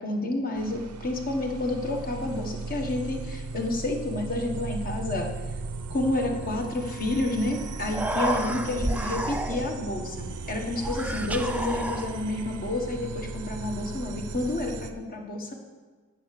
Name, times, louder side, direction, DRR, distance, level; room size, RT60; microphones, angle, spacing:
voice 1, 0.0-5.3 5.9-15.5, left 2 dB, 40° left, 2 dB, 1.2 m, -30 dB
sound 1, 0.5-14.9, right 3 dB, 80° right, 0.7 m, -36 dB
Human voice, 7.4-7.5 7.8-9.9 10.8-12.5, right 1 dB, 5° right, 0.4 m, -31 dB
8.2 x 6.5 x 6.7 m, 1.4 s
head